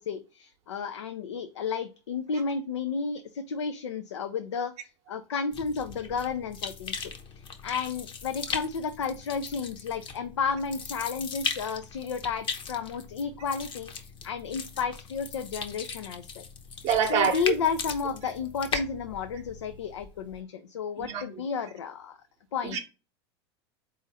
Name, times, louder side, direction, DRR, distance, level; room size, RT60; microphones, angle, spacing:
voice 1, 0.1-4.7 5.1-13.9 14.2-16.4 17.0-22.2 22.5-22.8, left 6 dB, 90° left, 0.4 m, -32 dB
sound 1, 5.5-20.4, left 5 dB, 35° left, 0.7 m, -39 dB
voice 2, 16.8-17.5 21.0-21.2 22.6-22.8, right 7 dB, 45° right, 0.7 m, -25 dB
3.9 x 2.5 x 4.0 m
hypercardioid pair, 95°, 15 cm